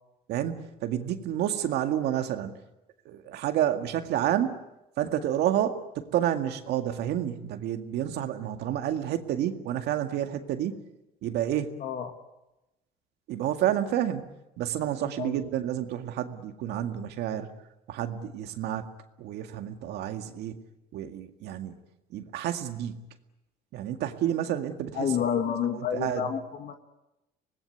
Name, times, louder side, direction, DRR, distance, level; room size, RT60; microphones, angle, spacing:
voice 1, 0.3-2.5 3.1-4.6 5.0-10.8 11.2-11.8 13.3-14.2 14.6-17.5 17.9-18.9 19.2-20.6 20.9-21.7 22.1-23.0 23.7-25.1 25.7-26.3, right 11 dB, 80° right, 7 dB, 2.0 m, -29 dB
voice 2, 11.8-12.1 15.2-15.5 25.0-26.7, left 8 dB, 55° left, 6 dB, 2.0 m, -29 dB
25.0 x 19.5 x 9.4 m, 0.95 s
cardioid pair, 110°, 17 cm